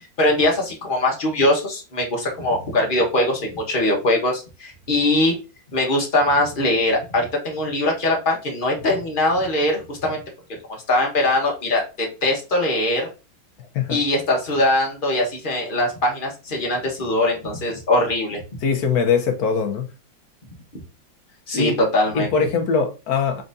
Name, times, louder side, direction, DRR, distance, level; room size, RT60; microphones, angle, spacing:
voice 1, 0.2-5.3 5.7-10.2 10.9-13.1 13.9-18.4 21.5-22.3, left 1 dB, 30° left, 1.2 m, -21 dB
voice 2, 18.6-19.9 21.5-21.7 22.1-23.4, left 5 dB, 60° left, 1.2 m, -21 dB
4.5 x 4.0 x 2.6 m
omnidirectional pair, 2.0 m